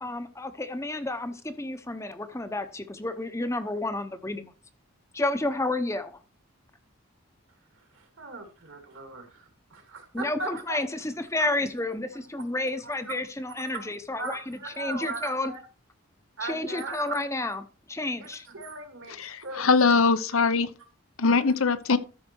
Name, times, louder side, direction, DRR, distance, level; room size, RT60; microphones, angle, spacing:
voice 1, 0.0-4.5 5.1-6.2 10.1-15.5 16.4-18.5, left 2 dB, 15° left, 0.8 m, -31 dB
voice 2, 8.2-10.8 11.4-11.5 12.8-13.1 13.7-13.9 14.2-15.6 16.4-17.2 18.2-19.7 21.3-21.4, right 3 dB, 70° right, 2.7 m, -38 dB
voice 3, 19.2-20.7 21.2-22.0, left 4 dB, 80° left, 0.8 m, -22 dB
13.0 x 5.8 x 4.5 m
head